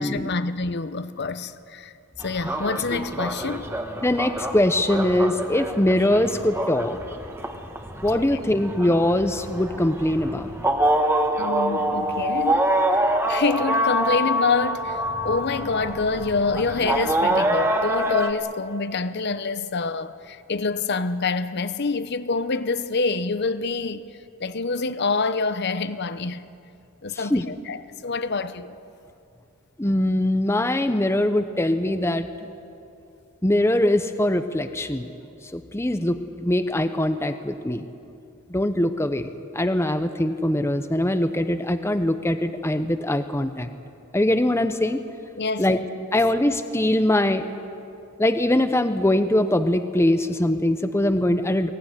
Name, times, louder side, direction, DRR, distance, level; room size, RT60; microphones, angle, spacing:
voice 1, 0.0-3.7 8.1-8.3 11.4-24.0 24.4-26.4 27.0-28.8 45.4-45.8, left 4 dB, 50° left, 0.8 m, -27 dB
sound 1, 2.2-18.3, right 1 dB, 10° right, 1.3 m, -26 dB
voice 2, 4.0-7.0 8.0-10.5 27.1-27.4 29.8-32.3 33.4-35.1 35.5-37.8 38.5-43.7 44.1-45.0 45.6-45.8 46.1-47.5 48.2-51.7, left 1 dB, 10° left, 0.7 m, -22 dB
22.5 x 17.0 x 9.9 m
head